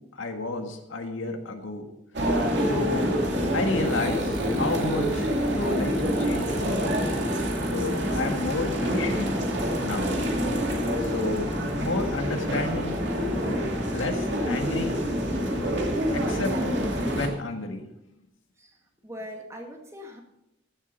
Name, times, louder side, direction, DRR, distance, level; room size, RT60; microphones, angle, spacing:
voice 1, 0.2-1.9 2.6-3.1 3.5-6.9 7.7-9.3 9.8-10.2 11.0-13.0 13.9-15.0 16.1-16.5 17.1-17.8, left 2 dB, 90° left, 5 dB, 1.7 m, -31 dB
sound 1, 2.1-17.3, equal, 60° right, 2.4 m, -26 dB
voice 2, 19.0-20.2, equal, 15° right, 2 dB, 1.9 m, -40 dB
15.0 x 7.5 x 5.3 m, 0.85 s
head